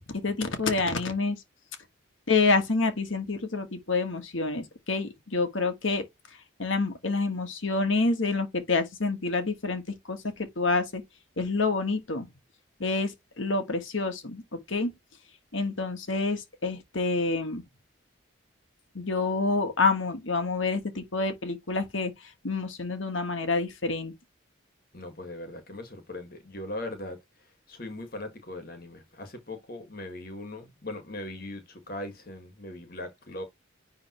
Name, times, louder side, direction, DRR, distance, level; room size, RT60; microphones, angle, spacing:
voice 1, 0.2-1.4 2.3-6.0 6.6-9.8 10.1-11.0 11.4-12.3 12.8-14.9 15.5-17.6 18.9-24.1, left 3 dB, 75° left, 1.5 m, -28 dB
voice 2, 24.9-27.2 27.7-33.4, left 1 dB, 45° left, 1.9 m, -39 dB
10.0 x 3.6 x 3.0 m
head